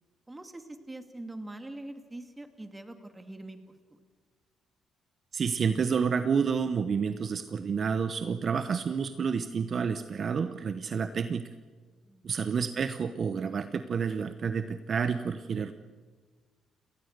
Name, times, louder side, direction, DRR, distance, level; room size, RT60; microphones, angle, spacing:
voice 1, 0.3-3.6 12.0-12.6, right 1 dB, 15° right, 7 dB, 2.5 m, -43 dB
voice 2, 5.3-11.4 12.2-15.7, right 6 dB, 50° right, 10 dB, 1.0 m, -29 dB
30.0 x 19.0 x 6.7 m, 1.5 s
cardioid pair, 90°, 0 cm